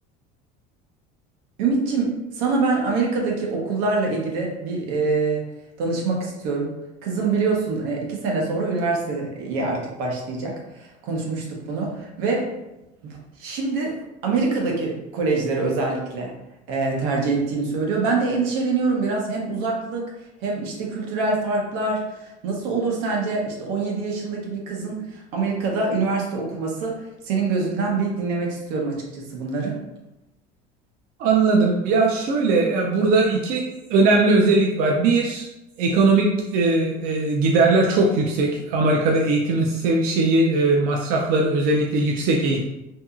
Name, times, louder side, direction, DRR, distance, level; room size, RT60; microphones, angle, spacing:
voice 1, 1.6-5.4 5.8-6.7 7.0-12.5 13.0-14.0 14.2-16.3 16.7-20.1 20.4-29.8, right 3 dB, 80° right, 0 dB, 0.8 m, -25 dB
voice 2, 31.2-35.5 35.8-42.7, right 3 dB, 50° right, -1 dB, 0.4 m, -19 dB
2.7 x 2.6 x 2.4 m, 0.93 s
cardioid pair, 170°, 18 cm